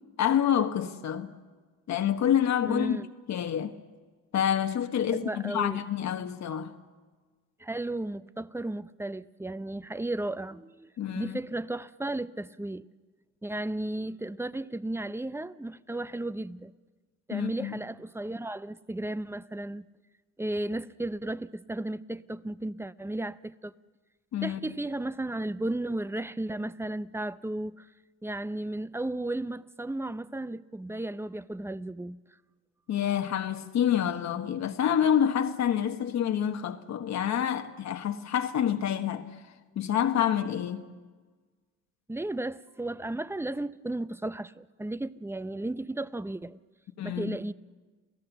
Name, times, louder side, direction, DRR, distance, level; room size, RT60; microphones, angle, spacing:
voice 1, 0.2-1.3 1.9-3.0 3.3-3.8 4.3-6.7 11.0-11.4 17.3-17.8 24.3-24.6 32.9-39.4 39.8-40.9 47.0-47.4, left 9 dB, 65° left, 1.2 m, -27 dB
voice 2, 2.7-3.1 5.1-5.8 7.6-12.9 13.4-16.7 17.3-19.9 20.4-23.7 24.4-27.9 28.2-32.2 42.1-46.6 47.0-47.5, right 1 dB, 10° right, 0.6 m, -34 dB
28.0 x 16.5 x 7.1 m
cardioid pair, 90°, 30 cm